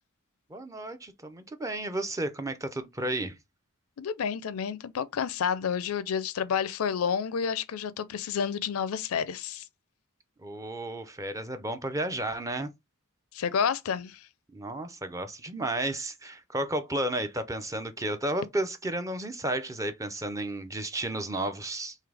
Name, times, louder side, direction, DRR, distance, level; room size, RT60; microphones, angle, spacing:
voice 1, 0.5-3.4 10.4-12.7 14.5-22.0, right 1 dB, 15° right, 0.5 m, -32 dB
voice 2, 4.0-9.6 13.3-14.3, left 7 dB, 75° left, 0.4 m, -30 dB
3.8 x 3.1 x 3.3 m
head